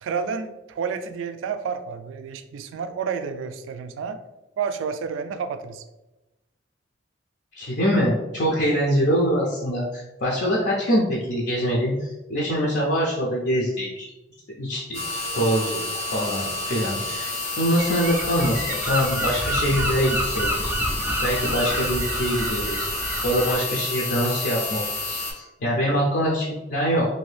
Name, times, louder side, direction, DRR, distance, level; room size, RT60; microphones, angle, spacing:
voice 1, 0.0-4.2 4.6-5.8, right 6 dB, 85° right, 9 dB, 0.3 m, -30 dB
voice 2, 7.5-14.1 14.6-15.8 16.1-20.7 21.2-22.9 23.2-27.1, equal, 60° left, -5 dB, 0.6 m, -24 dB
sound 1, 14.9-25.3, left 3 dB, 85° left, 1.0 m, -30 dB
Gull seagull, 17.8-23.6, right 1 dB, 10° right, 0.4 m, -28 dB
2.7 x 2.6 x 3.3 m, 1.0 s
head